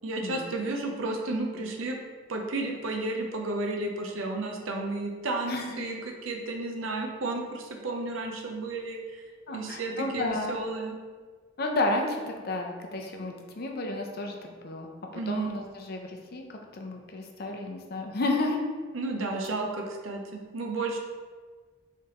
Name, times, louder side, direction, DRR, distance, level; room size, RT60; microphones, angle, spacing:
voice 1, 0.0-2.0 2.3-6.0 6.2-9.0 9.5-11.0 15.1-15.6 18.9-21.0, right 2 dB, 85° right, 2 dB, 0.6 m, -32 dB
voice 2, 5.5-5.8 9.5-10.6 11.6-14.9 15.3-18.6, left 2 dB, 50° left, 2 dB, 0.5 m, -32 dB
4.7 x 3.3 x 3.0 m, 1.5 s
head